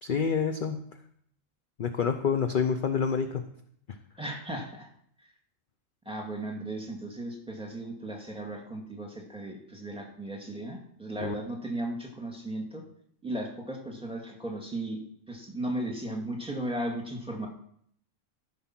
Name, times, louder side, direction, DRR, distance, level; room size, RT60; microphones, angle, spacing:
voice 1, 0.0-0.8 1.8-3.4 11.2-11.4, left 6 dB, 50° left, 7 dB, 0.8 m, -27 dB
voice 2, 4.2-4.9 6.1-12.8 13.2-15.0 15.3-17.5, right 1 dB, 5° right, 0 dB, 1.9 m, -36 dB
14.0 x 5.7 x 5.9 m, 0.67 s
omnidirectional pair, 1.3 m